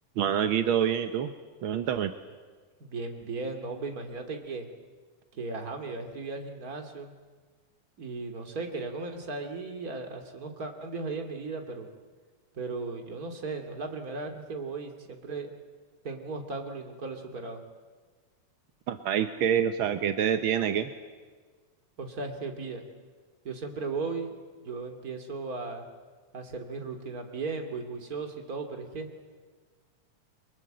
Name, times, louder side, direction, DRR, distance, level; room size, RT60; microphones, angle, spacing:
voice 1, 0.2-1.3 1.6-2.1 18.9-20.9, right 9 dB, 70° right, 8 dB, 1.2 m, -26 dB
voice 2, 2.8-4.7 5.3-7.1 8.0-11.9 12.5-15.5 16.0-17.6 22.0-22.8 23.4-24.3 24.6-25.9 26.3-29.1, right 3 dB, 30° right, 5 dB, 2.5 m, -36 dB
29.5 x 23.0 x 7.8 m, 1.4 s
omnidirectional pair, 3.4 m